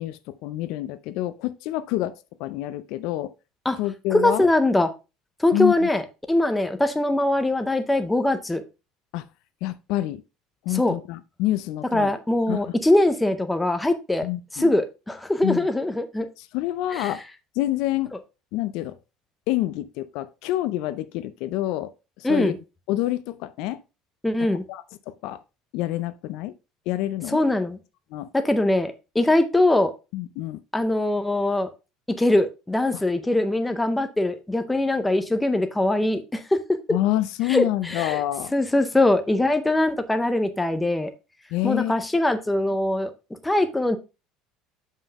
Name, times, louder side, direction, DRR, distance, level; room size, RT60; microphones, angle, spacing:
voice 1, 0.0-3.3 3.8-4.5 5.5-5.9 9.1-9.2 9.6-10.2 10.7-12.1 12.5-12.7 14.2-14.7 15.4-15.7 16.4-17.2 17.6-18.1 18.5-18.9 19.5-22.5 22.9-23.8 24.7-25.4 25.7-26.5 26.9-27.4 28.1-28.3 30.1-30.6 32.9-33.0 36.9-38.5 41.5-42.0, left 15 dB, 55° left, 0.4 m, -27 dB
voice 2, 4.1-4.9 5.4-6.0 6.3-8.6 10.7-11.0 11.9-14.3 14.5-16.3 16.9-17.1 22.2-22.6 24.2-24.6 27.3-27.8 28.3-29.9 30.7-31.7 32.2-36.6 37.5-38.2 38.5-41.1 41.6-43.1 43.4-44.0, left 1 dB, 5° left, 0.5 m, -22 dB
7.2 x 5.5 x 3.5 m
cardioid pair, 180°, 0 cm